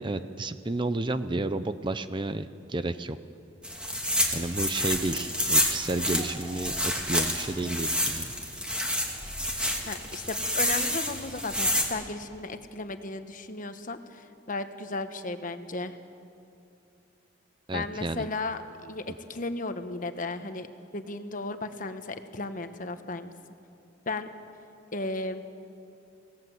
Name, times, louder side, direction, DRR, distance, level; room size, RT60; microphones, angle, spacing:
voice 1, 0.0-3.2 4.3-8.3 17.7-18.2, right 2 dB, 25° right, 12 dB, 0.6 m, -31 dB
sound 1, 3.6-11.8, equal, 5° right, 2.5 m, -29 dB
voice 2, 9.9-16.0 17.7-20.7 20.9-23.3 24.1-24.3 24.9-25.4, left 3 dB, 45° left, 9 dB, 1.2 m, -35 dB
28.0 x 17.5 x 8.0 m, 2.6 s
head